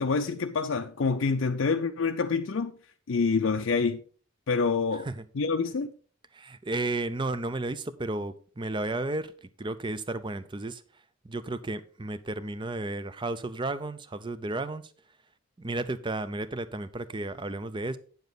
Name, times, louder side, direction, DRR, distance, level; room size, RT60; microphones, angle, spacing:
voice 1, 0.0-2.7 3.1-4.0 4.5-5.1 5.3-5.9, left 4 dB, 60° left, 0.5 m, -27 dB
voice 2, 6.3-10.8 11.2-14.8 15.6-18.0, right 2 dB, 20° right, 0.5 m, -33 dB
9.2 x 7.1 x 4.0 m
head